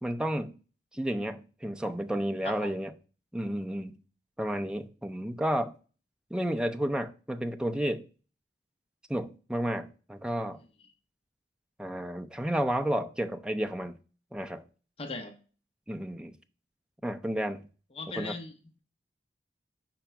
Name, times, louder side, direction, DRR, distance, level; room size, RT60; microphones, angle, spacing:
voice 1, 0.0-0.6 0.9-2.9 3.3-4.0 4.4-5.7 6.3-8.1 9.1-10.6 11.8-14.0 14.3-14.6 15.9-16.4 17.0-17.7 18.1-18.3, equal, 5° right, 0.4 m, -31 dB
voice 2, 15.0-15.4 17.9-18.5, left 3 dB, 35° left, 0.8 m, -38 dB
5.1 x 4.4 x 5.7 m
head